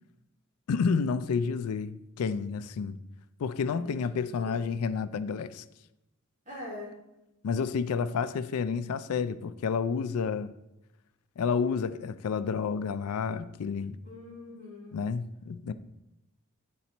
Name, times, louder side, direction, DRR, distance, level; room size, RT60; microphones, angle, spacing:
voice 1, 0.7-3.0 3.4-5.6 7.4-10.5 11.4-14.0 14.9-15.7, left 5 dB, 75° left, 0.4 m, -30 dB
voice 2, 3.6-4.0 4.4-4.6 6.5-6.9 14.0-15.0, left 2 dB, 35° right, 2.7 m, -43 dB
8.6 x 4.0 x 4.3 m
head